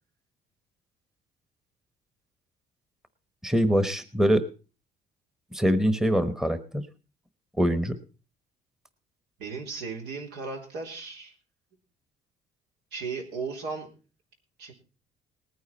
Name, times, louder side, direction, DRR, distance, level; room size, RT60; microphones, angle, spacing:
voice 1, 3.4-4.4 5.5-6.8 7.6-8.0, equal, 5° right, 11 dB, 1.1 m, -23 dB
voice 2, 9.4-11.3 12.9-13.9 14.6-14.7, right 4 dB, 80° right, 2 dB, 3.7 m, -35 dB
19.0 x 9.5 x 4.3 m, 0.35 s
cardioid pair, 110°, 17 cm